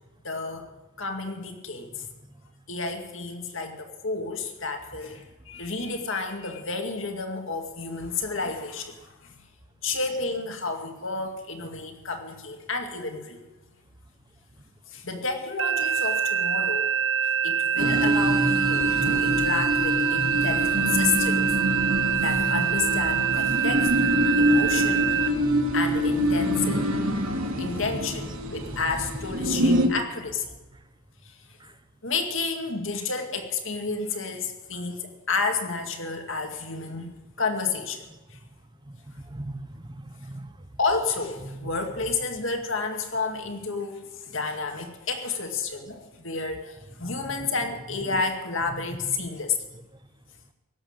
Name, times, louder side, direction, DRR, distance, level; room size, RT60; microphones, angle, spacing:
voice 1, 0.2-0.7 1.0-2.0 2.7-9.4 9.8-13.4 14.9-16.9 17.4-21.5 22.2-23.9 24.4-25.3 25.7-26.9 27.6-30.5 31.2-31.4 32.0-38.4 40.8-49.6, left 4 dB, 60° left, 5 dB, 2.2 m, -31 dB
sound 1, 15.6-25.3, right 8 dB, 55° right, 0.8 m, -25 dB
sound 2, 17.8-29.9, equal, 75° right, 2.3 m, -25 dB
voice 2, 26.5-27.1 27.5-29.9 30.7-30.8 31.6-31.8 33.2-33.3 34.7-34.9 38.1-38.2 38.9-40.7 41.2-42.3 47.0-47.5 47.9-48.2 48.6-49.2 49.7-49.8, right 1 dB, 20° right, 11 dB, 0.8 m, -41 dB
18.0 x 8.1 x 8.9 m, 1.1 s
head